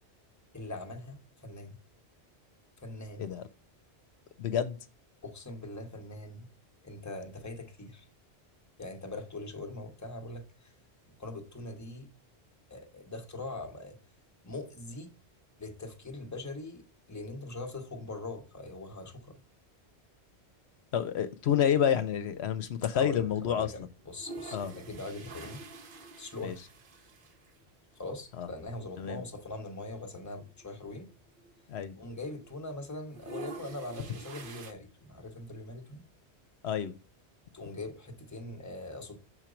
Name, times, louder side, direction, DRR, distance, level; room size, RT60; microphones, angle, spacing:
voice 1, 0.5-1.8 2.8-3.3 5.2-6.5 6.8-8.1 8.8-10.7 11.1-12.1 12.7-14.0 14.4-15.1 15.6-19.4 22.9-25.6 26.2-26.6 27.9-31.1 32.0-36.0 37.5-39.2, left 2 dB, 15° left, 0.9 m, -42 dB
voice 2, 4.4-4.8 20.9-23.7 24.5-24.7 26.4-26.5 28.4-28.5 29.0-29.2 31.7-31.9 36.6-36.9, left 9 dB, 75° left, 0.9 m, -29 dB
sound 1, 24.0-27.6 27.9-28.0 28.2-28.3 29.2-29.5 29.9-30.0 30.2-32.0 32.3-32.7 33.0-34.7, right 3 dB, 55° right, 1.0 m, -47 dB
6.4 x 4.5 x 4.9 m
omnidirectional pair, 1.1 m